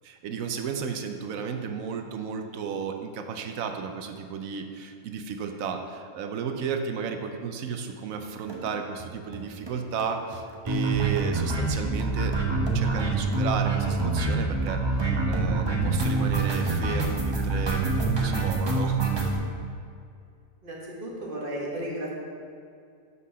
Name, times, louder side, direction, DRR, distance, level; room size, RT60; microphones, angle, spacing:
voice 1, 0.0-19.4, right 6 dB, 80° right, 6 dB, 1.0 m, -33 dB
sound 1, 8.5-8.7 9.0-9.1 9.3-9.4 9.7-9.8 10.0-19.4, right 3 dB, 25° right, 0.7 m, -26 dB
voice 2, 20.6-22.1, right 1 dB, 40° right, -4 dB, 1.5 m, -34 dB
6.2 x 5.5 x 5.5 m, 2.3 s
omnidirectional pair, 1.4 m